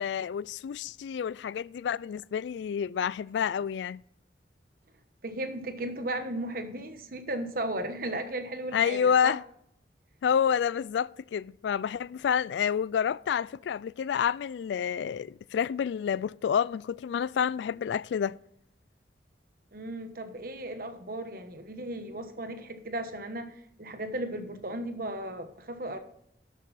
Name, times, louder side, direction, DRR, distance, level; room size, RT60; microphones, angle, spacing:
voice 1, 0.0-4.0 8.7-9.4 10.2-18.4, left 7 dB, 80° left, 0.3 m, -29 dB
voice 2, 5.2-9.3 19.7-26.0, right 1 dB, 55° right, 1.2 m, -35 dB
11.5 x 8.5 x 4.1 m
head